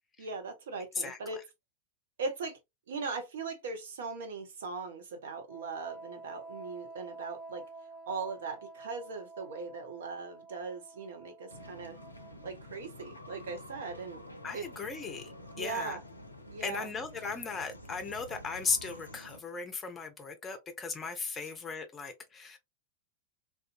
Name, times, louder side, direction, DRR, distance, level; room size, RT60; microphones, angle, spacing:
voice 1, 0.2-1.4 2.2-2.6 2.9-7.6 8.1-12.0 12.4-14.2 14.5-14.7 15.5-16.0 16.5-16.9, right 4 dB, 60° right, 0.7 m, -39 dB
Wind instrument woodwind instrument, 5.5-12.8, right 3 dB, 20° right, 1.1 m, -49 dB
sound 1, 11.5-19.4, left 1 dB, 85° left, 0.4 m, -49 dB
voice 2, 14.4-15.3 15.6-16.0 16.6-22.6, left 4 dB, 20° left, 0.6 m, -37 dB
2.5 x 2.3 x 2.4 m
figure-of-eight pair, 90°, 0 cm